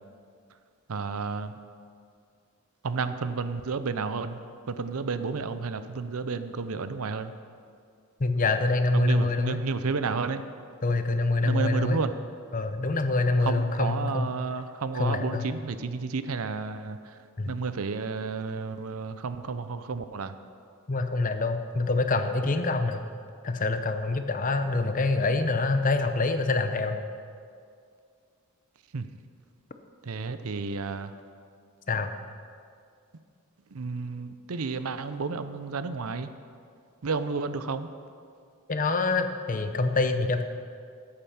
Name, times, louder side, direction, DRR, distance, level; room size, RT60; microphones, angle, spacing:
voice 1, 0.9-1.6 2.8-4.4 4.7-7.3 8.9-10.4 11.4-12.1 13.4-17.2 17.5-20.3 28.9-29.1 30.0-31.1 33.7-36.3 37.0-37.9, right 4 dB, 80° right, 11 dB, 0.6 m, -31 dB
voice 2, 8.2-9.6 10.8-12.0 12.5-14.3 15.0-15.5 17.4-17.6 20.9-23.0 23.4-27.0 31.9-32.1 38.7-40.4, left 3 dB, 40° left, 8 dB, 0.7 m, -26 dB
13.0 x 8.8 x 5.7 m, 2.3 s
head